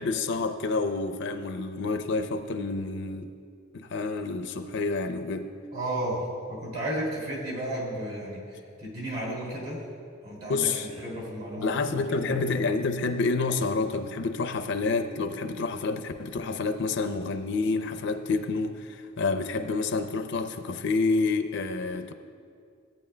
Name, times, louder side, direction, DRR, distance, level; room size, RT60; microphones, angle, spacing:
voice 1, 0.0-3.3 3.7-5.5 10.5-10.9 11.6-22.1, left 3 dB, 55° left, 8 dB, 0.5 m, -28 dB
voice 2, 5.7-9.8 10.2-12.4, right 1 dB, 45° right, -4 dB, 2.6 m, -33 dB
16.0 x 8.9 x 2.2 m, 2.2 s
head